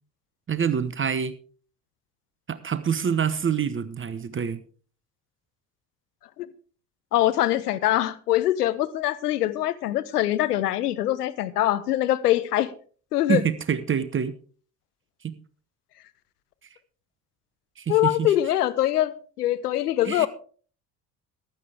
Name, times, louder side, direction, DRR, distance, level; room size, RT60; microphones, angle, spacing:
voice 1, 0.5-1.3 2.5-4.6 13.3-14.3 15.2-15.4 17.8-18.3 20.0-20.3, right 7 dB, 25° right, 14 dB, 1.0 m, -26 dB
voice 2, 7.1-12.7 13.1-13.4 17.9-20.3, left 13 dB, 75° left, 13 dB, 0.9 m, -23 dB
15.0 x 11.5 x 3.5 m, 0.42 s
figure-of-eight pair, 50°, 46 cm